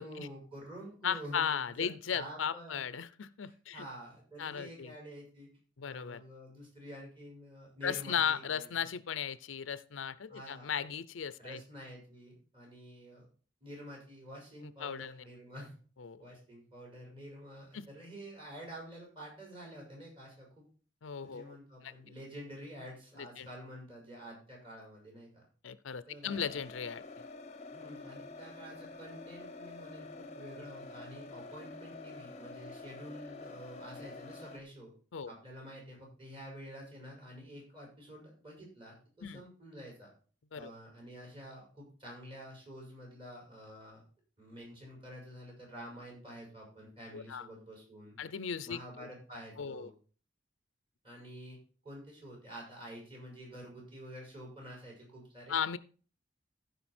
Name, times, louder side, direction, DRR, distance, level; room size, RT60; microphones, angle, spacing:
voice 1, 0.0-2.8 3.5-5.5 5.8-8.7 10.3-10.7 11.4-13.3 13.6-15.7 16.2-20.6 21.2-25.4 26.1-26.4 27.7-34.9 35.3-40.1 40.5-44.0 44.4-48.2 48.6-49.9 51.0-51.6 51.8-55.6, equal, 30° right, -2 dB, 5.3 m, -49 dB
voice 2, 1.0-3.9 4.4-4.9 5.8-6.2 7.8-11.6 14.8-15.1 16.0-16.2 17.7-17.9 21.0-21.6 21.8-21.9 23.2-23.5 25.6-27.0 35.1-35.3 39.2-39.4 40.5-40.7 47.1-47.5 48.2-48.8 49.6-49.9 55.5-55.8, left 7 dB, 90° left, 16 dB, 0.6 m, -36 dB
sound 1, 26.2-34.6, left 3 dB, 35° left, 0.8 m, -48 dB
15.5 x 5.2 x 4.3 m, 0.40 s
head